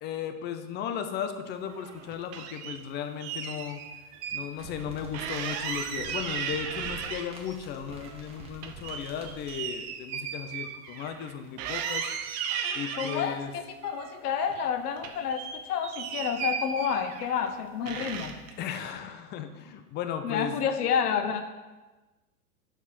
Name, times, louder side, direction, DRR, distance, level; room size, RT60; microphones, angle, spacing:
voice 1, 0.0-3.9 4.3-12.1 12.7-13.5 18.6-20.6, left 8 dB, 25° left, 8 dB, 0.5 m, -36 dB
sound 1, 1.7-2.8 3.2-4.4 4.7-4.8 5.1-7.5 7.9-11.3 11.6-13.2 13.8-14.7 15.0-17.5 17.9-18.5, right 7 dB, 35° right, 0.8 m, -36 dB
sound 2, 4.6-9.6, right 2 dB, 15° right, 1.4 m, -46 dB
voice 2, 13.0-18.4 20.2-21.4, left 7 dB, 80° left, 8 dB, 0.9 m, -29 dB
7.0 x 4.5 x 5.7 m, 1.2 s
hypercardioid pair, 115°, 46 cm